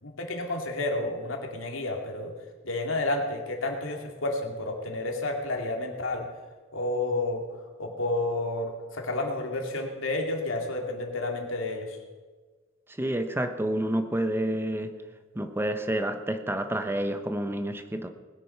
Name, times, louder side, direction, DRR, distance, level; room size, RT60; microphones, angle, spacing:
voice 1, 0.0-2.3 2.6-6.3 6.7-7.5 7.8-12.0, left 2 dB, 85° left, 2 dB, 2.5 m, -30 dB
voice 2, 13.0-14.9 15.3-18.1, right 1 dB, 10° right, 8 dB, 0.9 m, -29 dB
20.0 x 9.9 x 5.7 m, 1.4 s
head